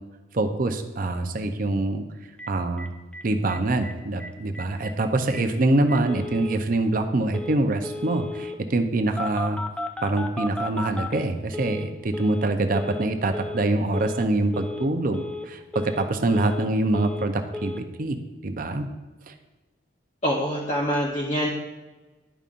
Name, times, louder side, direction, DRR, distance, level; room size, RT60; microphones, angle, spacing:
voice 1, 0.3-2.0 2.5-2.9 3.2-9.6 10.0-18.2 18.4-18.9 19.3-19.4, right 2 dB, 45° right, 7 dB, 0.5 m, -25 dB
Telephone, 2.4-2.5 2.8-2.9 3.1-3.2 3.5-3.9 4.2-4.3 4.5-4.9 5.3-5.4 5.9-6.6 7.3-7.6 7.8-8.6 9.2-11.9 12.1-12.5 12.7-13.1 13.3-13.7 13.9-14.3 14.5-14.9 15.1-15.5 15.7-16.7 16.9-17.3 17.5-17.8, left 2 dB, 5° left, 0.3 m, -34 dB
voice 2, 20.2-21.5, equal, 35° left, -3 dB, 0.8 m, -25 dB
11.0 x 5.3 x 2.5 m, 1.2 s
head